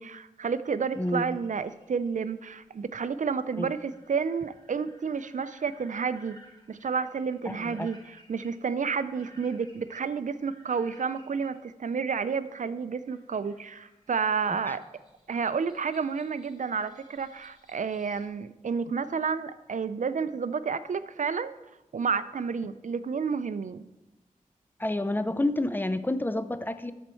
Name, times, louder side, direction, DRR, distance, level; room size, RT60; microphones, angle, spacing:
voice 1, 0.0-6.4 6.7-14.8 15.3-21.5 21.9-23.9, right 5 dB, 60° right, 14 dB, 0.4 m, -30 dB
sound 1, 0.9-11.5 13.1-18.3, equal, 30° left, 2.0 m, -59 dB
voice 2, 1.0-1.3 3.6-3.7 7.5-7.9 14.7-14.8 24.8-26.9, left 1 dB, 15° left, 12 dB, 0.5 m, -29 dB
13.0 x 4.4 x 4.4 m, 1.0 s
wide cardioid pair, 60°, 14 cm